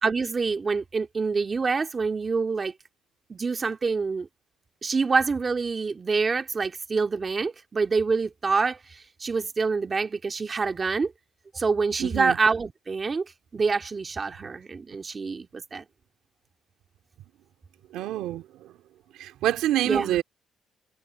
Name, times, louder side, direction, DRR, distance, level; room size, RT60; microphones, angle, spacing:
voice 1, 0.0-2.7 3.3-4.3 4.8-11.1 11.5-13.3 13.5-15.8 19.8-20.2, right 4 dB, 35° right, 2.1 m, -26 dB
voice 2, 12.0-12.4 17.9-18.4 19.2-20.2, right 13 dB, 90° right, 2.5 m, -26 dB
cardioid pair, 90°, 0 cm